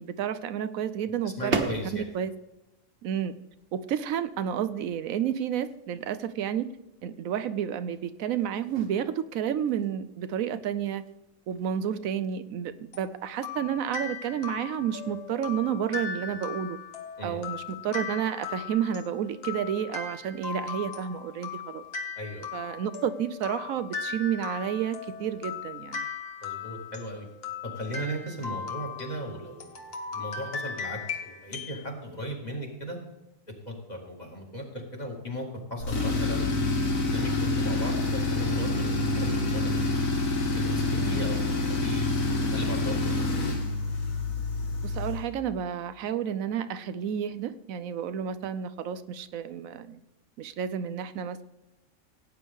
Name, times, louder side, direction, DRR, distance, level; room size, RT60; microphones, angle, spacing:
voice 1, 0.0-1.6 1.9-2.3 3.0-3.4 3.7-6.7 7.0-11.0 11.5-16.8 17.2-21.8 22.5-26.1 41.0-41.3 44.8-50.0 50.4-51.4, right 9 dB, 85° right, 12 dB, 1.1 m, -31 dB
voice 2, 1.2-2.1 17.2-17.4 22.2-22.5 26.4-27.3 27.7-33.0 33.7-36.5 37.0-39.9 40.6-41.4 41.7-43.5, equal, 30° left, 0 dB, 2.4 m, -37 dB
sound 1, 1.5-17.9, right 4 dB, 55° right, 1.5 m, -42 dB
sound 2, 12.9-31.8, left 6 dB, 50° left, 1.4 m, -38 dB
Tools, 35.8-45.3, left 2 dB, 80° left, 2.0 m, -27 dB
17.5 x 9.1 x 3.6 m, 0.95 s
omnidirectional pair, 1.4 m